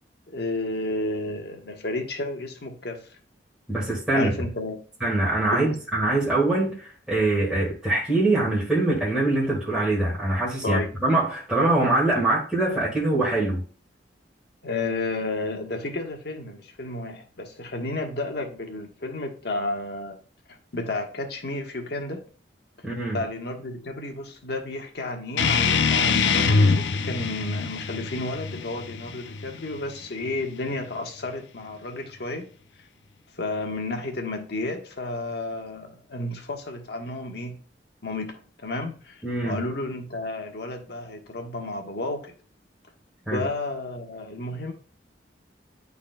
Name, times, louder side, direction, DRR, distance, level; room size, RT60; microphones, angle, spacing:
voice 1, 0.3-3.0 4.1-4.8 5.5-5.7 10.6-10.9 14.6-20.2 20.7-22.2 23.1-32.5 33.4-37.6 38.0-38.3 38.6-42.3 43.3-44.7, left 2 dB, 65° left, 1.3 m, -32 dB
voice 2, 3.7-4.3 5.0-13.6 22.8-23.2 39.2-39.6 43.3-43.4, right 2 dB, 5° right, 2.0 m, -23 dB
sound 1, 25.4-30.4, left 4 dB, 85° left, 0.5 m, -24 dB
11.5 x 4.1 x 2.3 m
head